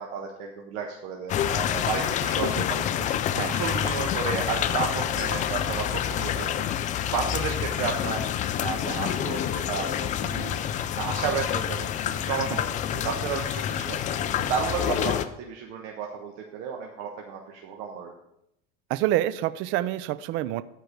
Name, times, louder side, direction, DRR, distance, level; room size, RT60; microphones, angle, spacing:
voice 1, 0.0-8.2 8.6-12.5 12.9-18.1, right 6 dB, 60° right, 1 dB, 1.3 m, -33 dB
sound 1, 1.3-15.3, left 10 dB, 25° left, 0.4 m, -28 dB
voice 2, 18.9-20.6, right 14 dB, 40° right, 14 dB, 0.4 m, -27 dB
13.0 x 4.6 x 5.2 m, 0.81 s
supercardioid pair, 145°, 31 cm